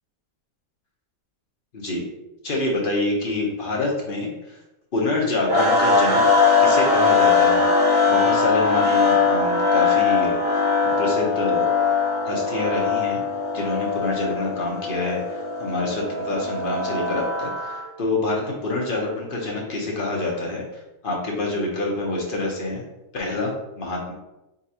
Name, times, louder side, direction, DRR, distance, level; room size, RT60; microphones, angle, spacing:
voice 1, 1.7-2.1 2.4-4.6 4.9-7.7 8.1-11.7 12.2-13.2 13.5-20.6 21.0-22.8 23.1-24.1, left 2 dB, 45° left, -2 dB, 0.8 m, -26 dB
sound 1, 5.5-17.9, left 4 dB, 85° right, 1.8 m, -21 dB
3.9 x 3.8 x 2.8 m, 0.95 s
omnidirectional pair, 1.8 m